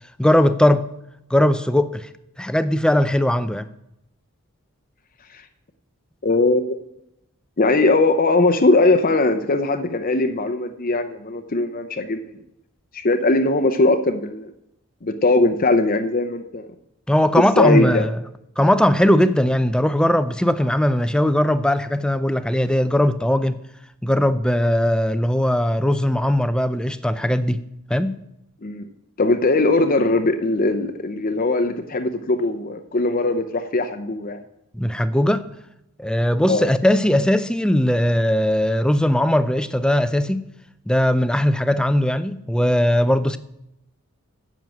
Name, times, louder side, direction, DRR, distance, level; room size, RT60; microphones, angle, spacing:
voice 1, 0.2-0.9 1.3-2.1 2.4-3.7 17.1-18.2 18.6-23.6 24.0-27.6 27.9-28.2 34.7-35.5 36.0-40.4 40.9-43.4, left 1 dB, 5° left, 0.5 m, -19 dB
voice 2, 6.2-6.7 7.6-12.2 12.9-14.5 15.0-16.7 17.6-18.1 28.6-28.9 29.2-34.4 36.5-36.7, left 2 dB, 40° left, 0.7 m, -20 dB
10.5 x 7.5 x 7.7 m
head